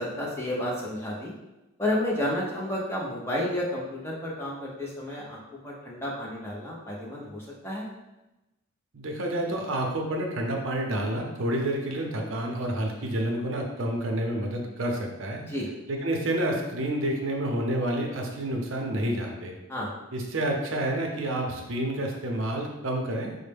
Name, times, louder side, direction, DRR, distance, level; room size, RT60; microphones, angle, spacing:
voice 1, 0.0-1.3 1.8-7.9 15.5-15.7 19.7-19.9, left 1 dB, 10° left, -4 dB, 0.6 m, -31 dB
voice 2, 8.9-15.5 15.9-19.5 20.1-23.3, right 1 dB, 70° right, 1 dB, 0.6 m, -29 dB
4.2 x 2.1 x 3.4 m, 0.99 s
head